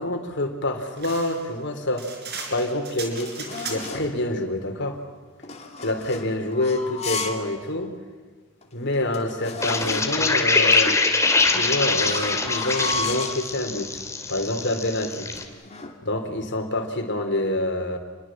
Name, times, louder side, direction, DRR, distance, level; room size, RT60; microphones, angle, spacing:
voice 1, 0.0-2.1 2.5-5.0 5.8-7.9 8.7-11.0 11.5-14.0 14.3-15.3 16.0-18.0, left 1 dB, 55° left, 5 dB, 3.7 m, -27 dB
sound 1, 1.0-4.1, right 4 dB, 50° right, 4.6 m, -37 dB
sound 2, 2.7-4.1 5.4-7.5 7.9-8.0 8.6-8.7 8.9-10.3 11.2-13.5 14.1-14.4 14.7-16.0, left 3 dB, 30° left, 2.6 m, -34 dB
sound 3, 9.6-15.4, left 3 dB, 15° left, 2.7 m, -23 dB
28.5 x 22.0 x 7.5 m, 1.5 s
head